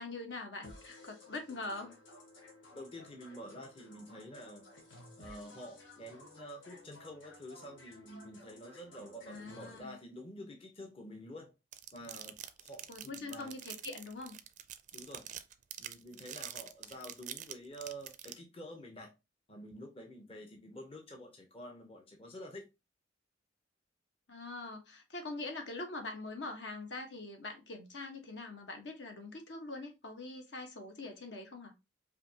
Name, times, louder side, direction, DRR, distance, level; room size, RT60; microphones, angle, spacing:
voice 1, 0.0-2.0 9.3-10.0 12.9-14.4 24.3-31.7, left 2 dB, 70° left, 1.1 m, -43 dB
Jam Spotlight Lazytoms B, 0.6-9.8, left 1 dB, 85° left, 1.3 m, -55 dB
voice 2, 2.7-4.7 5.2-11.6 11.9-13.5 14.9-15.3 15.8-19.1 19.5-22.7, equal, 30° left, 0.7 m, -48 dB
sound 1, 11.7-18.3, right 11 dB, 40° right, 0.4 m, -45 dB
5.0 x 2.7 x 2.7 m
head